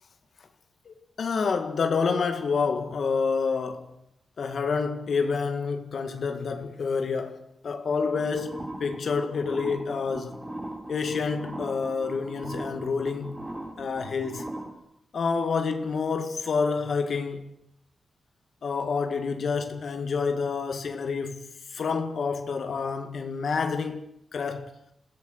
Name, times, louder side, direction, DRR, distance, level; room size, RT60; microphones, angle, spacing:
voice 1, 0.9-3.9 4.4-10.4 10.9-13.5 13.8-14.4 15.1-17.5 18.6-24.0 24.3-24.8, left 5 dB, 60° left, 1.8 m, -28 dB
sound 1, 8.1-14.7, right 1 dB, 15° right, 3.6 m, -39 dB
27.0 x 16.0 x 6.5 m
wide cardioid pair, 110°, 0 cm